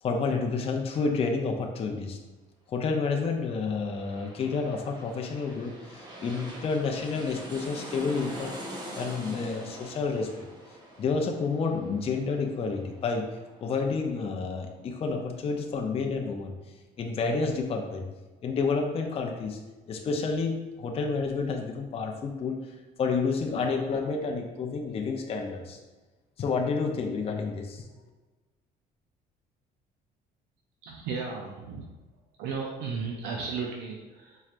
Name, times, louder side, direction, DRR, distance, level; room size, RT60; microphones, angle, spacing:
voice 1, 0.0-2.2 2.7-8.6 9.0-10.5 11.0-16.5 17.0-18.1 18.4-19.6 19.9-25.8 26.4-27.8, left 4 dB, 35° left, 2 dB, 0.5 m, -30 dB
sound 1, 3.5-14.9 15.2-15.3, equal, 25° right, 0.9 m, -44 dB
voice 2, 30.8-31.8 32.4-34.4, right 5 dB, 85° right, 0 dB, 0.5 m, -34 dB
4.4 x 3.1 x 2.4 m, 1.2 s
cardioid pair, 110°, 17 cm